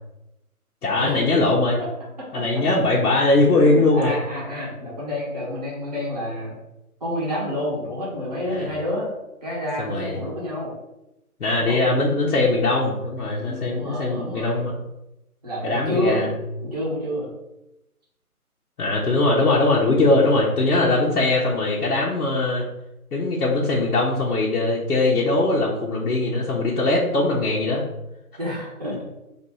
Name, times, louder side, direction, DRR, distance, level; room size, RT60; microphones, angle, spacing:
voice 1, 0.8-1.8 2.3-4.1 8.5-8.7 9.8-10.2 11.4-14.8 15.6-16.3 18.8-22.7 23.1-27.8, left 2 dB, 85° left, -5 dB, 1.2 m, -21 dB
voice 2, 2.2-2.6 3.5-6.5 7.0-9.1 9.4-10.7 11.5-11.8 13.3-14.7 15.4-16.2 16.6-17.3 28.4-29.0, left 1 dB, 25° right, -6 dB, 1.0 m, -29 dB
4.2 x 2.7 x 4.1 m, 0.92 s
hypercardioid pair, 175°, 45 cm